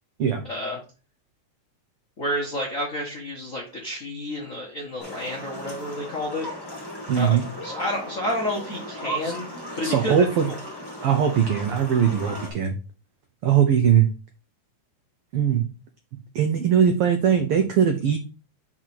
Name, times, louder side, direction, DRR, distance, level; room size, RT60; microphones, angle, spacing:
voice 1, 0.4-0.8 2.2-6.5 7.2-7.4 7.6-9.4 9.8-10.1 10.4-10.5, left 1 dB, 55° left, -1 dB, 0.9 m, -30 dB
sound 1, 5.0-12.5, equal, 10° left, 1.5 m, -36 dB
voice 2, 7.1-7.5 9.2-9.3 9.8-10.5 11.0-12.7 13.4-14.1 15.3-15.7 16.3-18.2, right 8 dB, 90° right, 5 dB, 1.2 m, -20 dB
4.6 x 4.6 x 5.9 m, 0.35 s
omnidirectional pair, 3.5 m